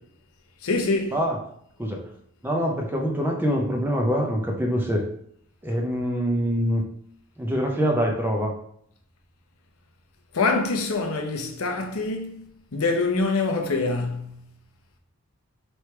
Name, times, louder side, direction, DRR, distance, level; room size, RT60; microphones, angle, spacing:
voice 1, 0.6-1.2 10.3-12.3 12.7-14.4, left 3 dB, 80° left, 0.7 m, -25 dB
voice 2, 2.4-5.0 5.6-6.8 7.4-8.5, equal, 10° right, 0.6 m, -24 dB
3.3 x 3.1 x 4.4 m
head